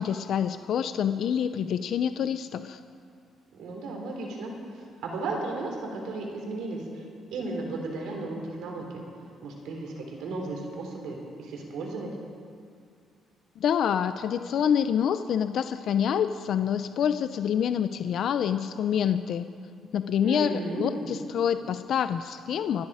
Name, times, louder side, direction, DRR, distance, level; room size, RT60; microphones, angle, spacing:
voice 1, 0.0-2.8 13.6-19.5 19.9-22.9, left 8 dB, 65° left, 11 dB, 0.5 m, -27 dB
voice 2, 3.5-4.5 5.0-7.0 7.3-9.0 9.4-12.1 20.2-21.1, right 2 dB, 80° right, 1 dB, 3.5 m, -34 dB
24.0 x 10.5 x 4.9 m, 2.3 s
cardioid pair, 115°, 0 cm